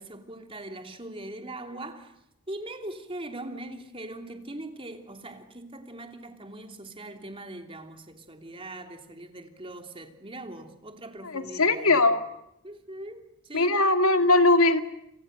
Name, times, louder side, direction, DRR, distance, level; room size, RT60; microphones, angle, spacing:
voice 1, 0.0-2.1 2.5-12.0 12.6-13.8, right 1 dB, 25° right, 3.1 m, -41 dB
voice 2, 11.2-12.2 13.5-14.8, left 2 dB, 75° left, 2.4 m, -20 dB
29.5 x 27.0 x 6.7 m
head